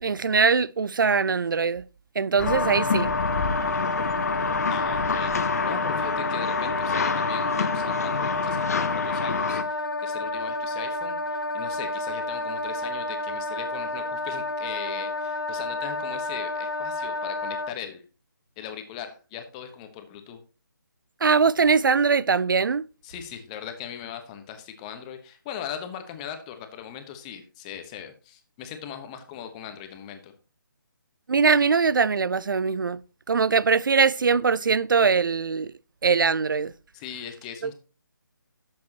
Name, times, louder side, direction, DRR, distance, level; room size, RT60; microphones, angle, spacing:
voice 1, 0.0-1.8 2.2-3.1 21.2-22.8 31.3-33.0 33.3-35.7 36.0-36.7 37.6-37.7, right 5 dB, 70° right, 0.4 m, -22 dB
Wind instrument woodwind instrument, 2.4-17.7, left 1 dB, 75° left, 0.7 m, -30 dB
sound 1, 2.4-9.6, left 5 dB, 45° left, 0.9 m, -27 dB
voice 2, 4.7-18.1 18.6-20.4 23.0-30.3 36.9-37.7, left 9 dB, 20° left, 1.1 m, -39 dB
11.5 x 7.6 x 2.9 m
figure-of-eight pair, 150°, 11 cm